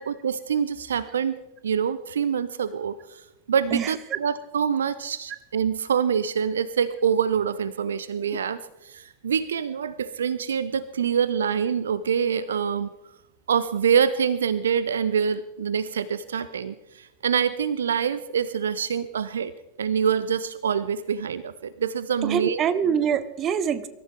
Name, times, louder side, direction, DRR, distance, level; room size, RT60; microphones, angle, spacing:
voice 1, 0.0-12.9 13.5-19.5 19.8-22.6, right 7 dB, 65° right, 16 dB, 0.6 m, -25 dB
voice 2, 3.7-4.2 22.2-23.9, right 7 dB, 30° right, 14 dB, 1.0 m, -25 dB
23.5 x 14.0 x 3.6 m, 0.95 s
figure-of-eight pair, 90°, 0 cm